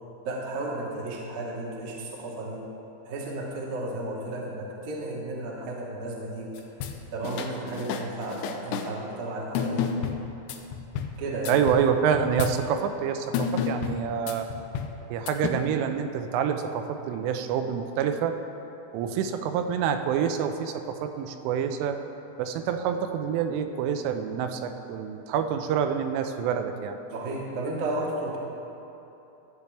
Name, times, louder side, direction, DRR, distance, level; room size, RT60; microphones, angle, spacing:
voice 1, 0.2-2.6 3.0-6.5 7.1-9.9 11.2-11.6 27.1-28.4, right 2 dB, 70° right, -3 dB, 1.8 m, -33 dB
sound 1, 6.6-7.0 7.2-8.9 9.6-11.1 11.5-11.9 12.1-12.6 13.3-14.9 15.3-15.5, left 7 dB, 85° left, 2.4 m, -30 dB
voice 2, 11.5-14.5 15.1-18.3 18.9-22.0 22.4-27.0, right 8 dB, 90° right, 7 dB, 3.1 m, -27 dB
14.5 x 8.2 x 3.3 m, 3.0 s
omnidirectional pair, 5.5 m